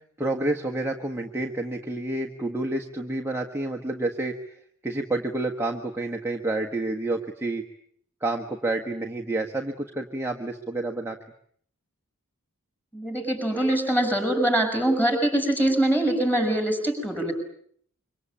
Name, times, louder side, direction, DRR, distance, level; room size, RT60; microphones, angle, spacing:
voice 1, 0.2-4.4 4.8-7.6 8.2-11.2, right 2 dB, 10° right, 1 dB, 1.5 m, -29 dB
voice 2, 12.9-17.3, right 1 dB, 10° left, 5 dB, 7.1 m, -23 dB
25.5 x 25.0 x 8.8 m, 0.63 s
head